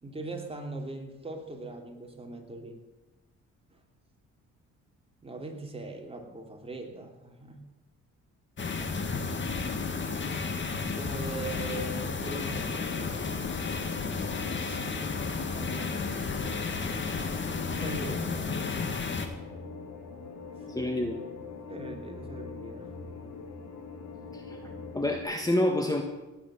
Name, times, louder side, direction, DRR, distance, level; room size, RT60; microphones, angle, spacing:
voice 1, 0.0-2.8 3.7-3.8 5.2-7.6 8.8-9.4 10.9-13.2 15.5-15.9 17.7-19.1 20.6-20.7 21.7-23.0, right 2 dB, 20° right, 2 dB, 3.0 m, -41 dB
sound 1, 8.6-19.3, left 4 dB, 40° left, 2.0 m, -32 dB
sound 2, 11.2-25.2, left 4 dB, 70° left, 2.7 m, -43 dB
voice 2, 20.7-21.2 24.3-24.6 24.9-26.0, left 1 dB, 10° left, 4 dB, 1.3 m, -28 dB
18.0 x 8.5 x 6.7 m, 1.1 s
cardioid pair, 90°, 30 cm